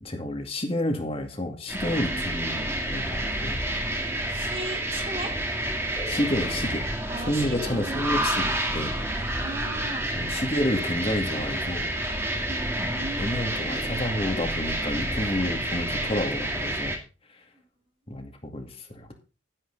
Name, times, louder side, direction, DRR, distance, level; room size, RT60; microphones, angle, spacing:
voice 1, 0.0-3.6 6.1-6.8 7.3-8.9 10.2-11.9 13.2-17.0 18.1-19.1, left 1 dB, 30° left, 4 dB, 2.2 m, -30 dB
sound 1, 1.7-17.0, right 1 dB, 10° right, 2.0 m, -29 dB
voice 2, 4.3-5.3 7.1-8.0 9.1-10.1 12.5-13.3 17.6-17.7, right 2 dB, 30° right, 4 dB, 2.2 m, -37 dB
11.5 x 10.5 x 4.0 m, 0.33 s
head